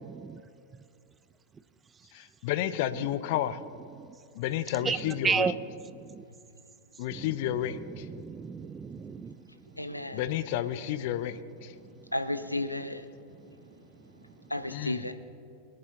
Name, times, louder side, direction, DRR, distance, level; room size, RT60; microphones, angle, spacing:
voice 1, 2.1-3.6 4.3-5.6 7.0-8.1 10.1-11.7 14.7-15.0, left 11 dB, 50° left, 13 dB, 0.6 m, -31 dB
voice 2, 8.0-9.3, right 6 dB, 20° right, 15 dB, 0.4 m, -31 dB
voice 3, 9.7-10.2 12.1-13.1 14.5-15.1, left 1 dB, 85° left, 10 dB, 0.6 m, -33 dB
21.5 x 11.0 x 3.0 m, 2.5 s
figure-of-eight pair, 90°, 0 cm